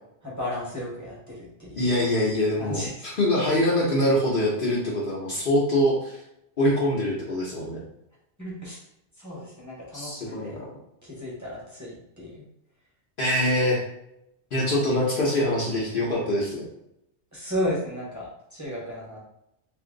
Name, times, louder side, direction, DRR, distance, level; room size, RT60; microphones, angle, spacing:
voice 1, 0.2-2.1 2.6-3.0 8.4-8.8 9.2-10.6 11.0-12.4 17.3-19.2, left 1 dB, 15° right, -6 dB, 1.0 m, -34 dB
voice 2, 1.8-2.8 3.2-6.1 6.6-7.8 9.9-10.7 13.2-13.8 14.5-16.6, left 1 dB, 50° left, -5 dB, 1.0 m, -24 dB
2.7 x 2.6 x 3.8 m, 0.81 s
omnidirectional pair, 1.2 m